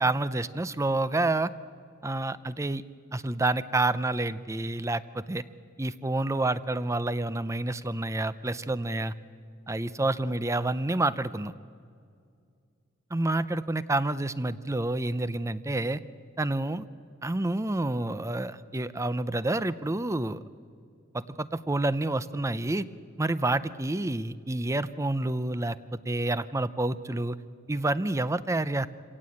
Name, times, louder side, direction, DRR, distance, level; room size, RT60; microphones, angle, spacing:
voice 1, 0.0-1.5 2.0-2.8 3.1-5.4 5.8-9.1 9.7-11.5 13.1-16.0 16.4-16.9 17.2-20.4 21.1-22.9 23.2-25.8 26.1-27.4 27.7-28.9, right 2 dB, 15° right, 15 dB, 0.5 m, -28 dB
26.5 x 17.0 x 8.6 m, 2.2 s
head